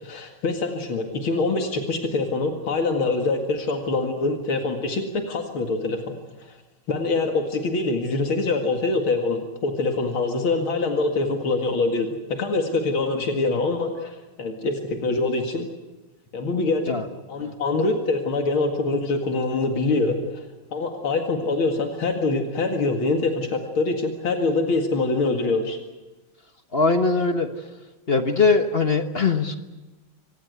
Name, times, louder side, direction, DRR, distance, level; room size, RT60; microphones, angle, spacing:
voice 1, 0.0-6.1 6.4-6.5 6.9-15.7 16.3-17.0 17.3-20.2 20.7-25.8, left 3 dB, 80° left, 4 dB, 2.9 m, -24 dB
voice 2, 26.7-27.5 28.1-29.5, left 4 dB, 35° left, 7 dB, 1.1 m, -21 dB
25.5 x 19.0 x 8.1 m, 1.1 s
omnidirectional pair, 2.2 m